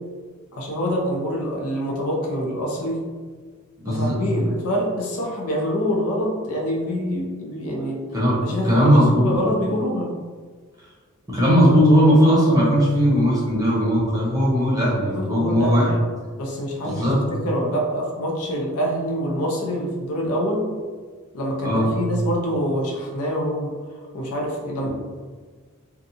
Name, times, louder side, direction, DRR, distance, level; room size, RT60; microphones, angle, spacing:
voice 1, 0.5-3.0 3.9-8.0 8.4-10.1 15.1-15.9 16.4-17.1 17.4-20.7 21.3-23.7 24.1-24.9, equal, 90° left, -2 dB, 0.6 m, -25 dB
voice 2, 3.8-4.2 8.1-8.4 8.6-9.3 11.3-15.9 16.8-17.2 21.6-21.9, equal, 15° right, -6 dB, 0.8 m, -18 dB
2.6 x 2.3 x 2.7 m, 1.5 s
head